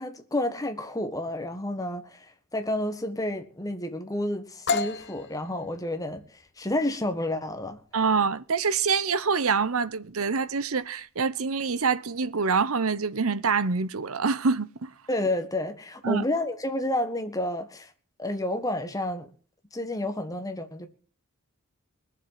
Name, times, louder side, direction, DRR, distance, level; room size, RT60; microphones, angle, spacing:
voice 1, 0.0-6.2 6.6-7.8 15.1-17.9 18.2-19.3 19.7-20.9, left 1 dB, 15° left, 1.6 m, -30 dB
sound 1, 4.7-12.3, left 4 dB, 55° left, 0.8 m, -36 dB
voice 2, 7.9-14.9 16.0-16.2, right 5 dB, 75° right, 0.9 m, -26 dB
20.5 x 7.4 x 7.4 m
head